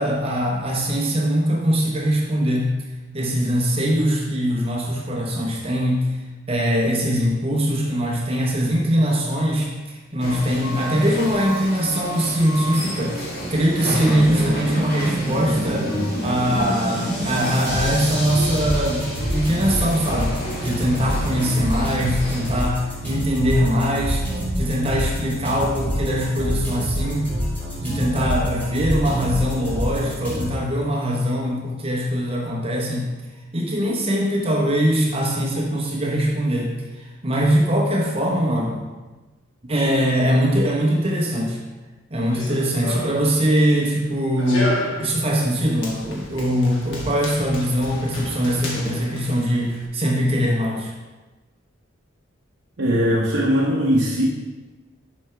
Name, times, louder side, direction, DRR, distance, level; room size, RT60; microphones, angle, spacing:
voice 1, 0.0-2.7 3.1-6.2 6.5-15.9 16.2-19.0 19.3-20.3 20.6-24.3 24.6-27.3 27.8-33.1 33.5-38.9 39.6-41.6 42.1-50.9, equal, 30° right, -1 dB, 0.9 m, -22 dB
sound 1, 10.2-22.6, equal, 50° left, 1.8 m, -31 dB
sound 2, 13.8-30.4, equal, 10° left, 2.2 m, -27 dB
Run, 42.1-49.9, equal, 70° left, 1.4 m, -32 dB
voice 2, 52.8-54.3, equal, 60° right, -3 dB, 0.8 m, -19 dB
7.1 x 5.7 x 3.3 m, 1.2 s
head